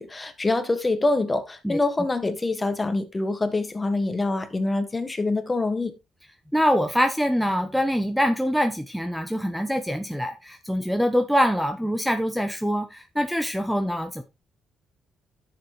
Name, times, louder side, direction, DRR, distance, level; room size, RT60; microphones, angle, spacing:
voice 1, 0.0-5.9, left 2 dB, 20° left, 1.6 m, -25 dB
voice 2, 6.5-14.2, equal, ahead, 1.1 m, -24 dB
10.5 x 7.1 x 3.1 m
cardioid pair, 90°, 0 cm